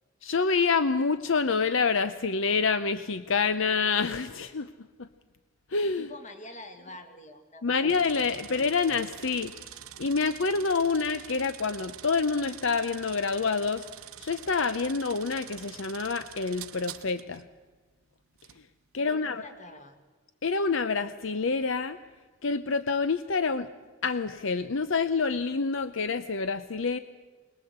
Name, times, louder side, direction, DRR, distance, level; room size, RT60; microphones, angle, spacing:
voice 1, 0.2-4.7 5.0-5.1 5.7-6.1 7.6-9.5 10.0-13.9 14.2-17.4 18.9-19.4 20.4-22.0 22.4-23.7 24.0-27.0, left 4 dB, 65° left, 12 dB, 0.7 m, -27 dB
voice 2, 6.0-8.5 19.0-20.0, left 1 dB, 35° left, 6 dB, 2.1 m, -47 dB
sound 1, 7.9-17.4 18.4-18.6, right 11 dB, 90° right, 1.0 m, -46 dB
22.0 x 21.0 x 8.0 m, 1.3 s
head